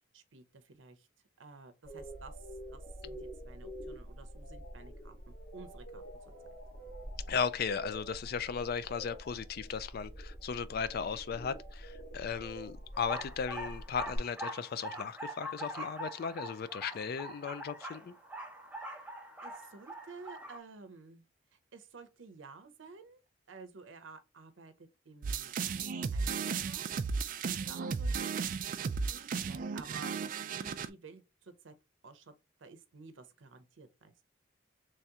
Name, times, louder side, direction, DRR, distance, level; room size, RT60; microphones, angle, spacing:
voice 1, 0.1-1.1 1.4-5.1 5.5-6.0 19.4-21.3 21.5-23.2 23.5-26.9 27.4-28.3 29.1-31.7 32.0-32.3 32.6-34.3, right 4 dB, 85° right, 0.6 m, -52 dB
sound 1, 1.9-14.2, equal, 90° left, 1.6 m, -46 dB
voice 2, 7.3-18.1, left 6 dB, 55° left, 0.3 m, -36 dB
sound 2, 12.9-20.6, equal, 5° right, 0.7 m, -43 dB
sound 3, 25.2-30.9, right 5 dB, 45° right, 0.3 m, -35 dB
3.1 x 2.8 x 3.5 m
head